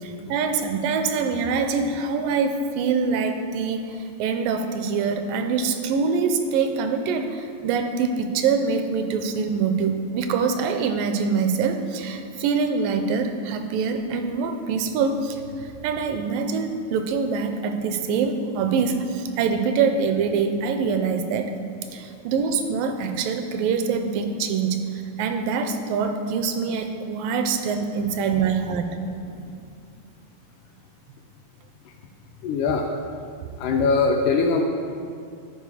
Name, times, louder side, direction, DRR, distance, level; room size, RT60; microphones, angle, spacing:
voice 1, 0.0-21.5 21.9-28.9, right 5 dB, 85° right, 7 dB, 2.2 m, -24 dB
voice 2, 29.3-29.7 31.9-32.0 32.4-32.9 33.5-34.6, left 4 dB, 80° left, 2 dB, 1.9 m, -23 dB
11.0 x 4.3 x 4.8 m, 2.3 s
omnidirectional pair, 4.0 m